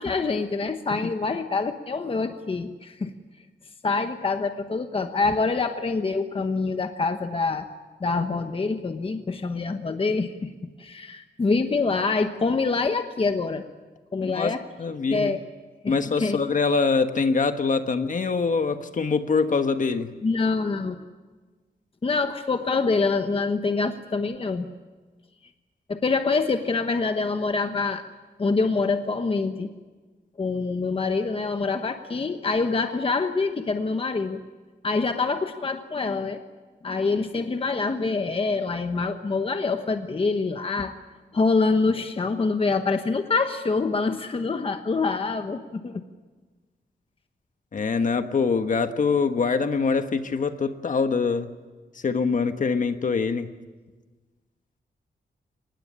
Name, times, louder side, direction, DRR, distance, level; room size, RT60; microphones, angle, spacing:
voice 1, 0.0-3.1 3.8-7.7 8.0-10.5 10.8-13.6 14.1-14.6 15.1-15.4 15.8-16.4 20.2-21.0 22.0-24.7 25.9-28.1 28.4-29.7 30.4-34.4 34.8-36.4 36.8-41.0 41.3-46.0, left 4 dB, 35° left, 7 dB, 1.2 m, -25 dB
voice 2, 14.2-14.5 14.8-15.3 15.9-20.1 47.7-51.5 52.0-53.5, left 4 dB, 50° left, 8 dB, 1.4 m, -24 dB
24.5 x 20.0 x 9.8 m, 1.3 s
wide cardioid pair, 145°, 17 cm